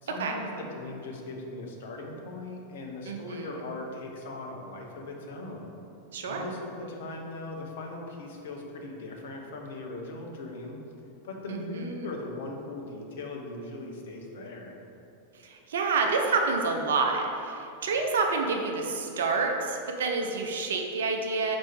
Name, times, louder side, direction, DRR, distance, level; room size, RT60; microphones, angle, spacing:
voice 1, 0.0-5.7 6.3-10.8 11.2-14.8, left 2 dB, 55° left, 0 dB, 0.9 m, -39 dB
voice 2, 3.1-3.6 6.1-6.4 11.5-12.1 15.3-21.6, right 4 dB, 60° right, 2 dB, 0.7 m, -28 dB
5.3 x 4.6 x 4.5 m, 2.8 s
figure-of-eight pair, 90°, 0 cm